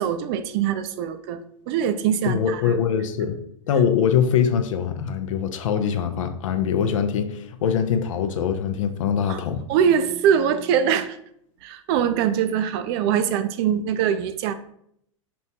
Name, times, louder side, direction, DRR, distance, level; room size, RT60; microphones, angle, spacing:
voice 1, 0.0-2.7 9.3-9.4 9.7-11.2 11.6-14.5, right 8 dB, 50° right, 10 dB, 0.4 m, -23 dB
voice 2, 2.3-3.4 3.7-9.7, left 7 dB, 70° left, 8 dB, 0.5 m, -23 dB
5.2 x 2.2 x 2.7 m, 0.70 s
hypercardioid pair, 110°, 17 cm